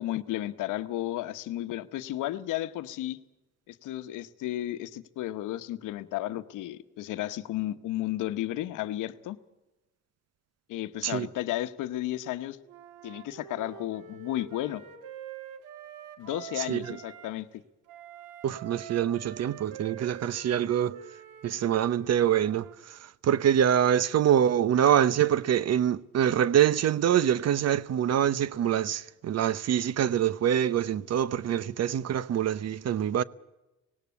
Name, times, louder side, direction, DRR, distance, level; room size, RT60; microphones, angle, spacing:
voice 1, 0.0-3.2 3.7-9.4 10.7-12.6 13.0-14.8 16.2-17.6, left 14 dB, 90° left, 1.0 m, -33 dB
Wind instrument woodwind instrument, 12.7-17.3 17.9-22.7, right 9 dB, 90° right, 1.9 m, -46 dB
voice 2, 16.6-17.0 18.4-21.0 21.4-33.2, right 10 dB, 55° right, 0.8 m, -25 dB
18.5 x 17.5 x 8.3 m
cardioid pair, 90°, 30 cm